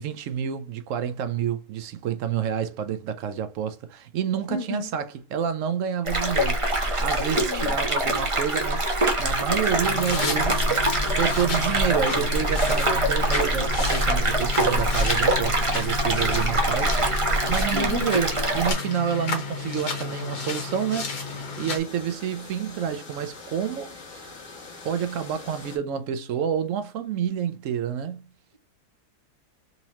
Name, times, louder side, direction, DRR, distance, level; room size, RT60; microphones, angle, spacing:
voice 1, 0.0-21.1 21.6-24.3 24.8-28.2, right 8 dB, 70° right, 0.8 m, -29 dB
voice 2, 4.5-4.9 7.4-7.8 8.1-8.2 17.7-18.2, left 5 dB, 35° left, 0.7 m, -33 dB
sound 1, 6.0-18.7, right 1 dB, 30° right, 0.6 m, -24 dB
sound 2, 9.8-21.8, left 4 dB, 85° left, 1.8 m, -32 dB
sound 3, 11.8-25.8, left 3 dB, 50° left, 1.5 m, -45 dB
4.1 x 2.8 x 2.8 m
omnidirectional pair, 1.7 m